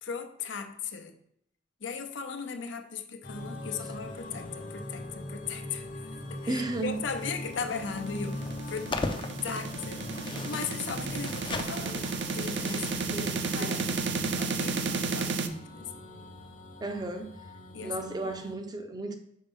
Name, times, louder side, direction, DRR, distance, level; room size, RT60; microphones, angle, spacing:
voice 1, 0.0-1.2 1.8-9.0 9.4-13.8 14.3-16.0 17.7-18.3, left 5 dB, 85° left, 0.7 m, -38 dB
sound 1, 3.2-18.5, left 1 dB, 45° left, 0.9 m, -41 dB
voice 2, 6.5-7.0 13.1-13.8 16.8-17.4 17.8-19.2, right 2 dB, 20° right, 0.6 m, -34 dB
sound 2, 7.4-15.5, right 4 dB, 65° right, 0.5 m, -33 dB
sound 3, 8.4-14.1, left 3 dB, 25° left, 0.5 m, -39 dB
5.4 x 4.4 x 5.3 m
head